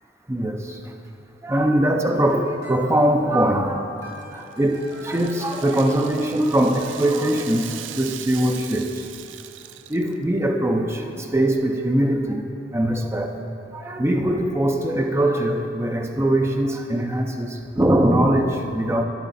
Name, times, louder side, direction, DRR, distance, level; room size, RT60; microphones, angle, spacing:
voice 1, 0.3-0.9 1.4-3.9 4.3-9.1 9.9-13.4 13.7-19.0, right 1 dB, 15° right, 3 dB, 0.5 m, -22 dB
sound 1, 2.0-7.6, right 2 dB, 55° right, 1.5 m, -46 dB
Rattle (instrument), 4.1-10.3, right 11 dB, 90° right, 0.4 m, -39 dB
12.0 x 6.1 x 4.0 m, 2.8 s
head